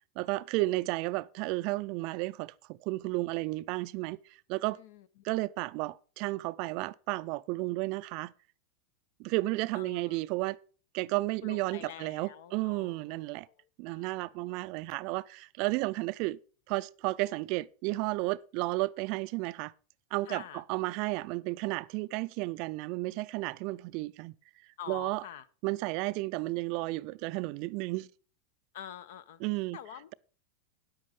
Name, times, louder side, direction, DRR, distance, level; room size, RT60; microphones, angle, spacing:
voice 1, 0.2-4.2 4.5-4.8 5.2-8.3 9.2-10.6 10.9-13.5 13.8-16.4 16.7-19.7 20.1-24.3 24.9-25.2 25.6-28.1 29.4-29.8, right 21 dB, 50° right, 0.4 m, -33 dB
voice 2, 4.7-5.2 9.7-10.2 11.4-14.3 20.3-20.6 24.8-25.5 28.7-29.4 29.7-30.1, left 10 dB, 70° left, 0.9 m, -47 dB
9.4 x 8.5 x 5.3 m
supercardioid pair, 150°, 0 cm